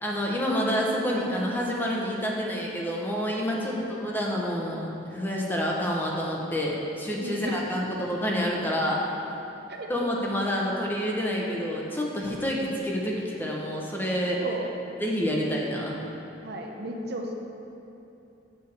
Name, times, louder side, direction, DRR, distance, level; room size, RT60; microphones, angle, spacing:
voice 1, 0.0-9.0 9.9-14.4 15.0-16.0, equal, 10° left, -2 dB, 1.0 m, -28 dB
voice 2, 3.5-4.0 7.2-7.6 9.7-9.9 14.4-14.7 16.4-17.3, right 1 dB, 60° right, 1 dB, 0.7 m, -34 dB
7.0 x 5.0 x 6.9 m, 2.9 s
head